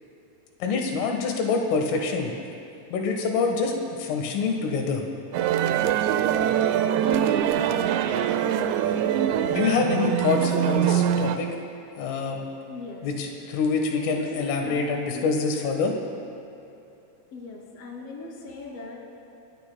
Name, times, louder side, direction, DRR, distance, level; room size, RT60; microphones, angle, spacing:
voice 1, 0.6-2.3 2.9-5.0 9.5-11.5 12.0-12.4 13.0-16.0, left 4 dB, 85° left, 2 dB, 4.0 m, -26 dB
sound 1, 5.3-11.4, right 9 dB, 80° right, 2.6 m, -23 dB
voice 2, 12.7-13.1 13.9-15.3 17.3-19.0, left 3 dB, 35° left, -2 dB, 3.2 m, -39 dB
29.5 x 18.5 x 2.3 m, 2.8 s
omnidirectional pair, 5.6 m